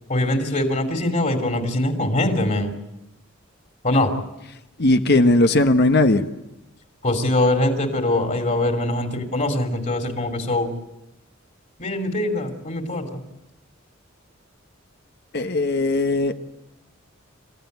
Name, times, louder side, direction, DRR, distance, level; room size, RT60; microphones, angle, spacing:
voice 1, 0.1-2.8 3.8-4.1 7.0-10.7 11.8-13.2, left 1 dB, 40° left, 4 dB, 3.0 m, -22 dB
voice 2, 4.8-6.2 15.3-16.3, left 2 dB, 55° left, 7 dB, 1.3 m, -18 dB
27.0 x 15.0 x 9.5 m, 0.94 s
head